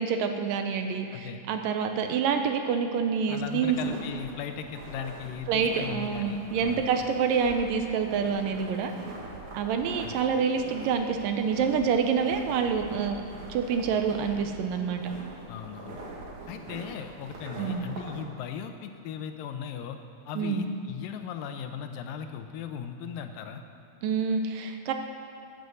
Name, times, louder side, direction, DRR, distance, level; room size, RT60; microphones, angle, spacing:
voice 1, 0.0-3.8 5.5-8.9 9.5-13.2 13.5-15.0 17.6-17.9 20.4-20.6 24.0-24.9, right 6 dB, 80° right, 6 dB, 2.4 m, -27 dB
voice 2, 1.1-1.4 3.3-6.9 10.0-10.3 15.5-16.0 16.5-20.0 20.3-23.6, left 8 dB, 80° left, 7 dB, 2.4 m, -38 dB
sound 1, 3.4-18.2, right 2 dB, 60° right, 3.1 m, -43 dB
12.5 x 7.9 x 8.0 m, 2.6 s
omnidirectional pair, 4.1 m